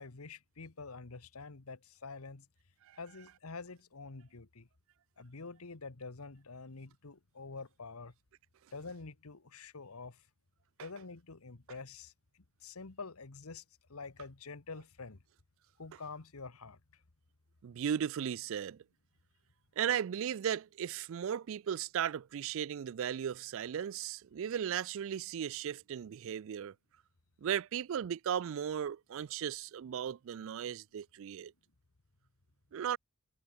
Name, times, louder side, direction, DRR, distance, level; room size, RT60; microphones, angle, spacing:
voice 1, 0.0-2.5 3.0-4.7 5.2-8.1 8.7-10.2 10.8-13.6 13.9-15.2 15.8-16.8, left 4 dB, 85° left, 1.3 m, -47 dB
voice 2, 17.6-18.8 19.8-26.7 27.4-31.5 32.7-33.0, right 9 dB, 60° right, 0.3 m, -36 dB
head